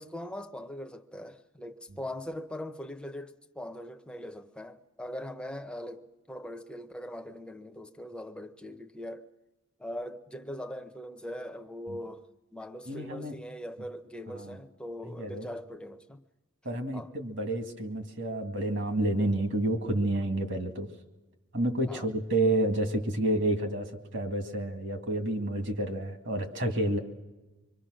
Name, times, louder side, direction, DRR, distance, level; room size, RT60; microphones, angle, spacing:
voice 1, 0.0-9.3 9.8-12.3 12.5-16.2 16.9-17.1 21.9-22.1 24.9-25.0, left 1 dB, 5° left, 0.7 m, -41 dB
voice 2, 12.9-13.3 14.3-14.6 15.2-15.5 16.6-20.9 21.5-27.0, right 1 dB, 55° right, 2.1 m, -29 dB
26.0 x 23.0 x 6.4 m
head